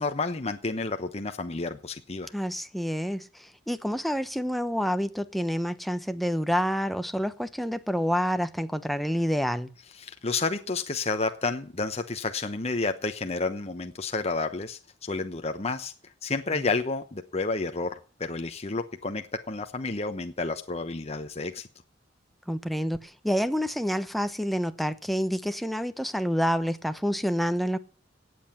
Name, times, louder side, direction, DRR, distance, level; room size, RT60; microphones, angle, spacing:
voice 1, 0.0-2.3 10.0-15.9 16.2-21.7, left 3 dB, 35° left, 1.0 m, -30 dB
voice 2, 2.3-9.7 22.5-27.8, equal, ahead, 0.9 m, -28 dB
17.5 x 7.9 x 7.3 m
head